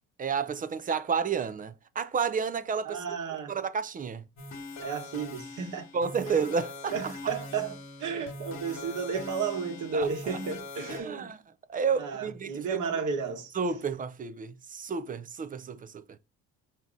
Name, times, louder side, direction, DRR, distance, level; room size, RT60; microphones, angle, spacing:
voice 1, 0.2-3.0 3.5-4.2 5.9-7.1 9.9-10.4 10.9-11.4 11.7-12.8 13.5-16.2, right 6 dB, 25° right, 0.4 m, -31 dB
voice 2, 2.8-3.5 4.8-5.9 6.2-6.4 6.9-11.3 12.0-13.5, right 5 dB, 60° right, 1.1 m, -33 dB
sound 1, 4.4-11.0, left 2 dB, 55° left, 1.3 m, -42 dB
4.7 x 2.8 x 3.6 m
cardioid pair, 90°, 35 cm